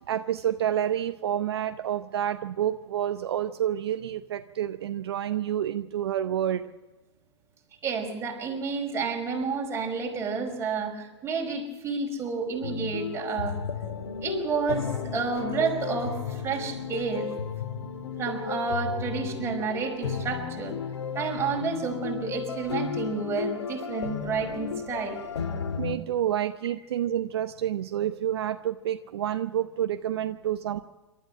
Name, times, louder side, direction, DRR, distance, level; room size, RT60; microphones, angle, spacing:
voice 1, 0.1-6.7 25.8-30.8, right 11 dB, 60° right, 10 dB, 0.9 m, -29 dB
voice 2, 7.8-13.6 14.2-17.3 18.2-20.8 21.2-25.2, right 4 dB, 20° right, 0 dB, 5.4 m, -30 dB
sound 1, 12.6-26.0, left 6 dB, 70° left, 1.9 m, -34 dB
27.5 x 13.0 x 8.7 m, 1.2 s
figure-of-eight pair, 105°, 15 cm